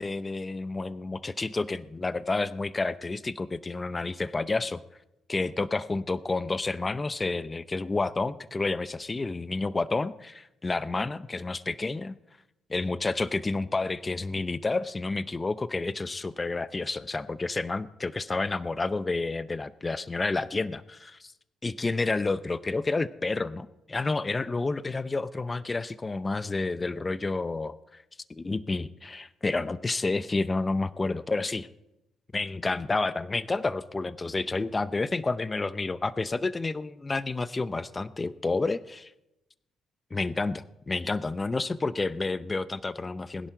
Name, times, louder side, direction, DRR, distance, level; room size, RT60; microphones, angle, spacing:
voice 1, 0.0-4.8 5.3-12.2 12.7-21.3 21.6-28.0 28.3-31.7 32.3-39.1 40.1-43.5, left 3 dB, 25° left, 15 dB, 0.6 m, -30 dB
20.5 x 10.5 x 4.5 m, 0.90 s
cardioid pair, 90°, 0 cm